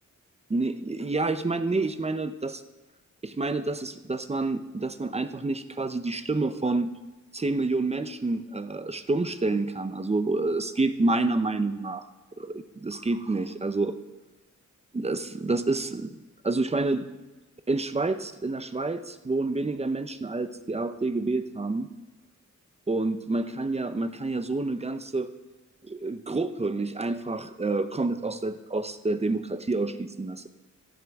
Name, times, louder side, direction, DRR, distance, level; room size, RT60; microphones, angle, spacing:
voice 1, 0.5-2.6 3.2-6.9 7.3-12.0 12.4-13.9 14.9-16.2 16.4-17.1 17.7-21.9 22.9-25.3 25.8-30.5, right 3 dB, 20° right, 10 dB, 0.6 m, -28 dB
17.0 x 12.5 x 3.5 m, 1.1 s
wide cardioid pair, 165°, 30 cm